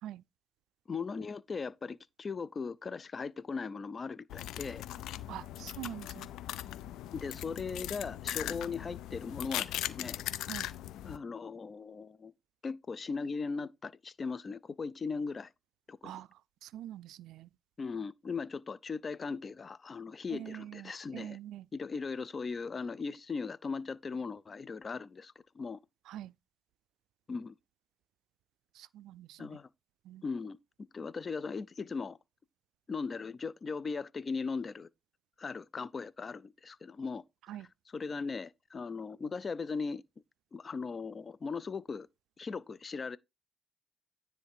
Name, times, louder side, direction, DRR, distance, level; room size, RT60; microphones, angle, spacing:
voice 1, 0.9-4.8 7.1-10.2 11.0-12.3 12.6-15.5 15.9-16.1 17.8-21.4 21.7-25.8 27.3-27.6 29.4-29.7 30.2-30.6 30.9-32.2 32.9-34.9 35.4-37.2 37.9-40.0 40.5-42.1 42.4-43.2, left 4 dB, 35° left, 0.6 m, -38 dB
sound 1, 4.3-11.2, left 13 dB, 85° left, 0.5 m, -39 dB
voice 2, 5.3-6.3 10.5-10.7 16.0-17.5 20.3-21.7 26.1-26.3 28.7-29.6 30.0-30.2 37.5-37.7, right 12 dB, 85° right, 0.3 m, -45 dB
9.8 x 3.4 x 4.8 m
cardioid pair, 90°, 0 cm